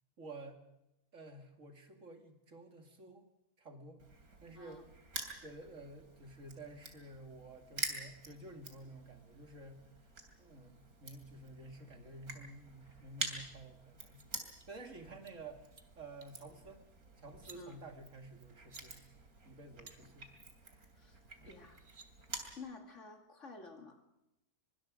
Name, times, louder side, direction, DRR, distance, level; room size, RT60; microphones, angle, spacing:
voice 1, 0.2-0.6 1.1-3.3 3.6-4.0 4.4-4.8 5.4-9.8 10.4-14.3 14.7-15.7 16.0-16.8 17.2-19.1 19.4-20.3 21.4-21.6, right 2 dB, 60° right, 5 dB, 2.6 m, -51 dB
Crushing, 4.0-22.6, right 3 dB, 80° right, 3.4 m, -48 dB
sound 1, 13.9-14.3 14.6-14.7 15.1-15.3 15.6-15.8 16.2-16.4 17.3-17.6 18.5-18.8 19.9-20.0 21.3-21.4 21.6-22.1, right 4 dB, 35° right, 2.0 m, -56 dB
voice 2, 21.5-21.8 22.6-24.0, left 3 dB, 55° left, 5 dB, 2.8 m, -51 dB
24.5 x 23.5 x 5.1 m, 0.87 s
omnidirectional pair, 1.5 m